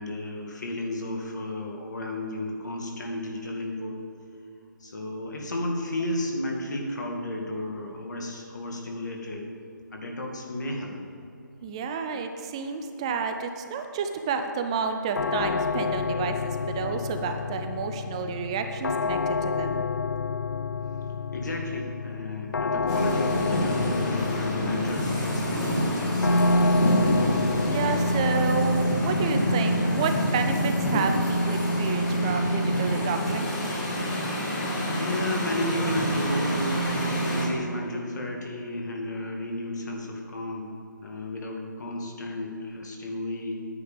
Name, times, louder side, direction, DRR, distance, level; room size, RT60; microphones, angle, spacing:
voice 1, 0.0-4.0 4.8-9.5 9.9-11.0 21.3-26.8 34.9-40.7 41.0-43.7, left 1 dB, 60° left, 1 dB, 2.2 m, -33 dB
voice 2, 11.6-19.9 27.7-33.5, right 5 dB, 15° right, 6 dB, 0.4 m, -30 dB
sound 1, 15.2-34.1, left 5 dB, 75° left, 0.5 m, -31 dB
sound 2, 22.9-37.5, equal, 20° left, 1.5 m, -26 dB
9.7 x 9.6 x 5.2 m, 2.7 s
figure-of-eight pair, 160°, 11 cm